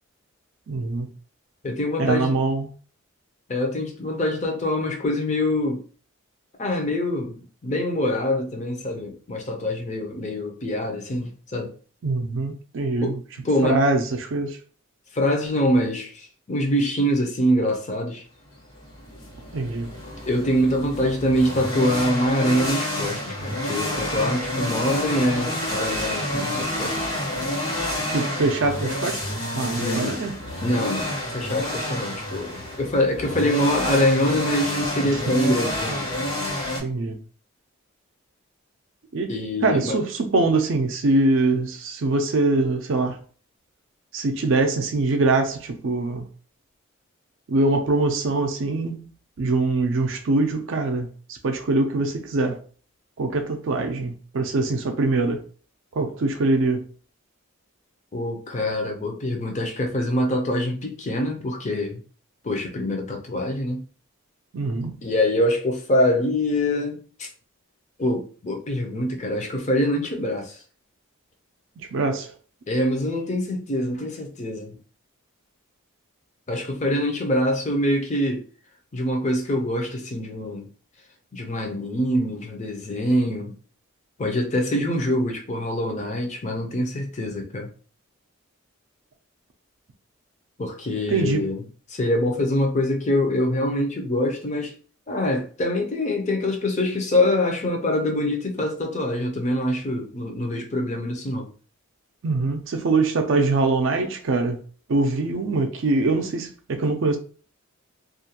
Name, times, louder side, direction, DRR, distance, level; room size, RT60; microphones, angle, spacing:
voice 1, 0.7-1.1 2.0-2.7 12.0-13.2 13.6-14.6 19.5-19.9 28.1-29.3 29.5-30.3 35.1-35.2 36.8-37.2 39.1-39.3 39.6-43.2 44.1-46.3 47.5-49.1 49.4-52.6 53.2-55.4 56.0-56.9 64.5-65.0 71.8-72.3 91.1-91.5 102.2-104.6 104.9-107.2, right 3 dB, 60° right, 0.4 m, -23 dB
voice 2, 1.6-2.3 3.5-5.8 6.6-11.7 13.0-13.1 13.4-13.8 15.1-18.2 20.3-26.9 29.8-30.2 30.6-36.1 39.3-40.0 58.1-62.0 62.4-63.8 65.0-67.3 68.0-70.6 72.7-74.8 76.5-78.4 78.9-80.6 81.3-83.5 84.2-87.7 90.6-91.6 91.9-94.7 95.1-101.5, left 1 dB, 35° left, 0.5 m, -24 dB
sound 1, 18.5-36.8, left 1 dB, 85° left, 1.3 m, -29 dB
2.4 x 2.2 x 2.8 m
head